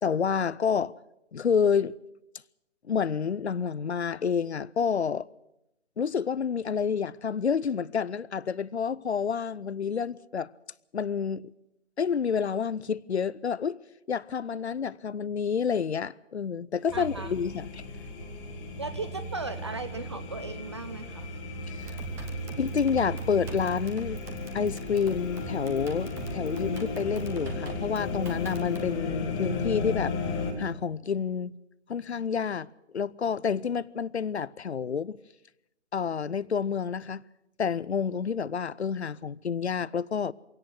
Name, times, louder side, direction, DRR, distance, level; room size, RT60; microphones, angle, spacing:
voice 1, 0.0-0.9 1.3-1.9 2.9-5.3 6.0-10.5 10.9-11.5 12.0-13.8 14.1-17.8 21.7-22.0 22.6-24.2 24.5-30.1 30.6-31.5 31.9-35.2 35.9-37.2 37.6-40.3, left 6 dB, 60° left, 0.7 m, -29 dB
sound 1, 16.9-30.5, left 2 dB, 15° left, 1.6 m, -35 dB
voice 2, 16.9-17.3 18.8-21.3, right 3 dB, 25° right, 0.7 m, -37 dB
sound 2, 21.8-29.0, right 3 dB, 5° right, 1.1 m, -42 dB
23.0 x 17.5 x 6.5 m
figure-of-eight pair, 145°, 37 cm